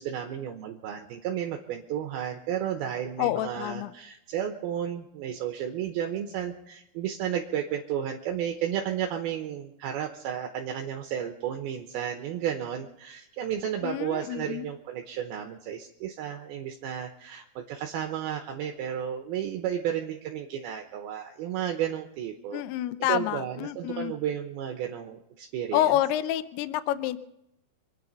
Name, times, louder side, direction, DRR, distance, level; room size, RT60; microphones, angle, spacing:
voice 1, 0.0-22.6 23.1-25.9, right 9 dB, 75° right, 3 dB, 2.5 m, -33 dB
voice 2, 3.2-3.9 13.8-14.7 22.5-24.1 25.7-27.2, left 13 dB, 80° left, 13 dB, 2.6 m, -28 dB
25.5 x 9.8 x 5.5 m, 0.82 s
omnidirectional pair, 5.1 m